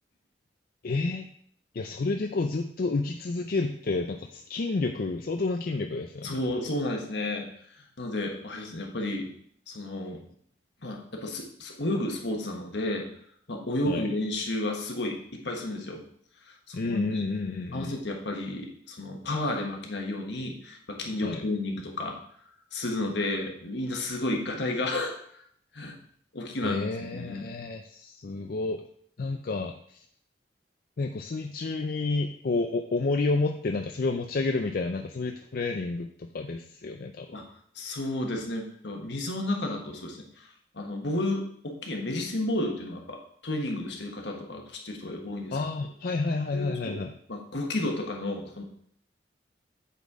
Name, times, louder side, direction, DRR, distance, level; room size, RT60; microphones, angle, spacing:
voice 1, 0.8-1.3 1.7-6.3 13.9-14.1 16.7-17.9 21.2-21.4 26.6-28.8 29.2-30.0 31.0-37.4 45.5-47.1, left 3 dB, 55° left, 4 dB, 0.4 m, -30 dB
voice 2, 6.2-7.5 7.8-9.3 9.7-10.2 10.8-13.1 13.5-16.0 16.5-17.2 17.7-22.2 22.7-25.4 25.7-26.0 26.3-27.5 37.3-37.5 37.7-40.5 40.7-45.6 46.5-47.0 47.3-48.6, left 1 dB, 75° left, 1 dB, 1.4 m, -32 dB
8.2 x 4.3 x 4.8 m, 0.65 s
head